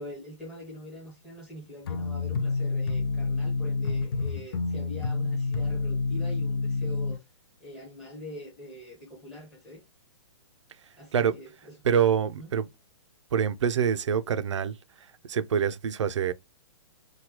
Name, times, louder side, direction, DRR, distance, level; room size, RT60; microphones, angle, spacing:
voice 1, 0.0-7.2 7.6-9.8 11.0-11.7 12.4-12.5, equal, ahead, 1.2 m, -44 dB
sound 1, 1.8-7.2, left 4 dB, 55° left, 0.4 m, -28 dB
voice 2, 11.8-12.6 13.3-14.8 15.3-16.3, right 8 dB, 90° right, 0.4 m, -25 dB
2.9 x 2.2 x 2.9 m
hypercardioid pair, 170°, 15 cm